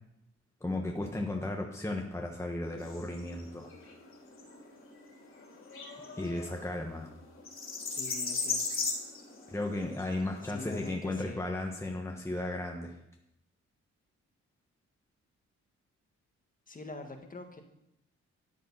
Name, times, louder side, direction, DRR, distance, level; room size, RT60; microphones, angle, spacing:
voice 1, 0.6-3.7 6.2-7.1 9.5-12.9, left 2 dB, 10° left, 1 dB, 1.3 m, -35 dB
sound 1, 2.8-10.9, left 4 dB, 45° left, 3.1 m, -39 dB
voice 2, 7.9-8.6 10.4-11.4 16.7-17.6, left 2 dB, 30° left, 5 dB, 1.7 m, -44 dB
12.5 x 7.4 x 5.6 m, 0.80 s
cardioid pair, 110°, 29 cm